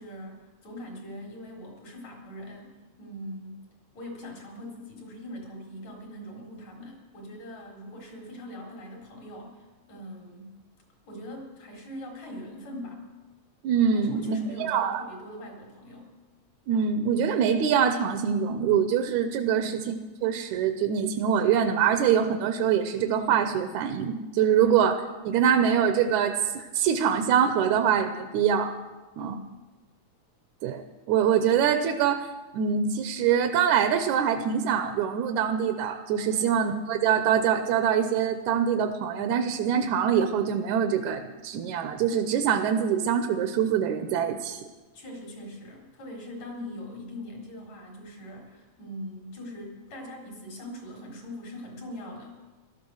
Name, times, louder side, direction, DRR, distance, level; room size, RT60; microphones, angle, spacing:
voice 1, 0.0-3.6 3.9-10.6 11.1-13.1 13.9-16.1 19.5-19.8 24.6-24.8 29.2-29.5 36.3-36.6 44.9-52.4, left 1 dB, 65° left, -1 dB, 5.3 m, -42 dB
voice 2, 13.6-15.0 16.7-19.9 20.2-28.7 29.2-29.3 30.6-30.8 31.1-32.3 32.5-44.6, right 8 dB, 80° right, 7 dB, 2.2 m, -24 dB
17.5 x 13.0 x 6.4 m, 1.2 s
omnidirectional pair, 3.5 m